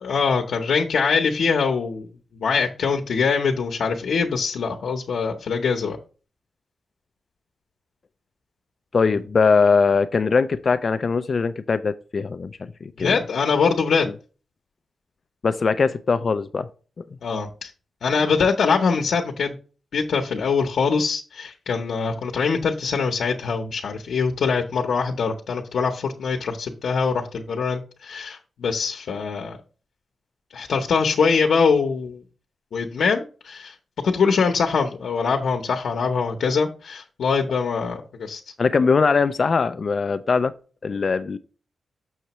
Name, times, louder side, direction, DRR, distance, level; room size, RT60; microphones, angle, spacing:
voice 1, 0.0-2.1 2.3-6.0 13.0-14.1 17.2-17.7 18.0-19.6 19.9-29.6 30.5-32.2 32.7-33.7 34.0-38.4, left 5 dB, 90° left, 1 dB, 0.8 m, -23 dB
voice 2, 8.9-13.2 15.4-16.7 17.0-17.1 38.6-40.5 40.8-41.4, left 5 dB, 45° left, 11 dB, 0.3 m, -21 dB
6.7 x 6.3 x 3.0 m, 0.37 s
wide cardioid pair, 150°, 0 cm